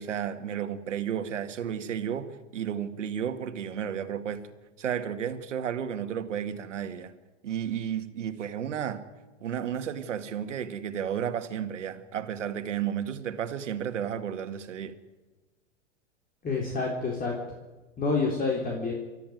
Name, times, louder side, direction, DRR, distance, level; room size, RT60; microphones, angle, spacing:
voice 1, 0.0-4.4 4.8-7.1 7.4-9.0 9.4-14.9, right 9 dB, 75° right, 2.0 m, -32 dB
voice 2, 16.4-17.3 18.0-18.9, left 4 dB, 25° left, 4.1 m, -28 dB
28.5 x 13.5 x 9.4 m
hypercardioid pair, 105°, 37 cm